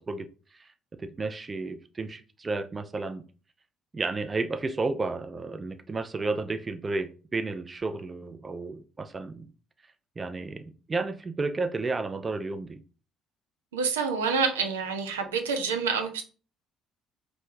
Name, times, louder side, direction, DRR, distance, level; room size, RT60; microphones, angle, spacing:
voice 1, 0.1-0.7 1.0-3.2 3.9-9.5 10.2-12.8, right 3 dB, 30° right, 9 dB, 0.4 m, -32 dB
voice 2, 13.7-16.2, right 5 dB, 75° right, 5 dB, 0.5 m, -27 dB
3.2 x 2.7 x 4.5 m, 0.37 s
figure-of-eight pair, 50°, 0 cm